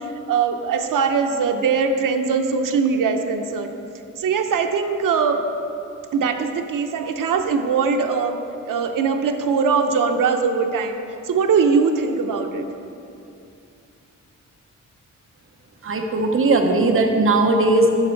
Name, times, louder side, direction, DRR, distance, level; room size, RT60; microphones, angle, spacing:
voice 1, 0.0-3.7 4.2-5.4 6.1-8.4 8.7-12.7, right 5 dB, 85° right, 5 dB, 0.7 m, -21 dB
voice 2, 15.8-17.9, right 2 dB, 45° right, 2 dB, 0.9 m, -18 dB
10.5 x 6.0 x 4.5 m, 2.6 s
wide cardioid pair, 160°, 31 cm